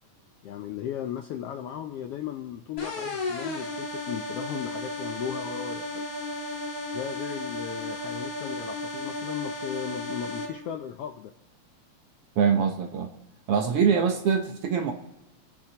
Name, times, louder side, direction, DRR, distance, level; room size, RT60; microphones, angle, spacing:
voice 1, 0.4-6.1 6.9-11.3, left 10 dB, 75° left, 6 dB, 1.4 m, -36 dB
sound 1, 2.8-10.5, left 2 dB, 45° left, 4.3 m, -34 dB
voice 2, 12.4-13.1 13.5-14.9, right 6 dB, 65° right, 4 dB, 1.6 m, -23 dB
29.5 x 10.5 x 2.9 m, 0.94 s
omnidirectional pair, 3.4 m